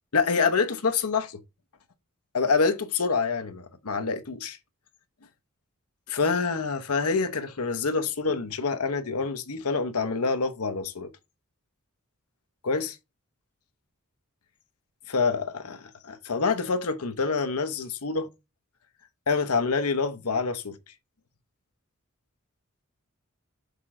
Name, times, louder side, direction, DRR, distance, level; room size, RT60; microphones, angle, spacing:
voice 1, 0.1-1.4 2.3-4.6 6.1-11.1 12.6-13.0 15.1-18.3 19.3-20.8, left 4 dB, 90° left, 0.9 m, -26 dB
6.6 x 3.8 x 4.2 m
head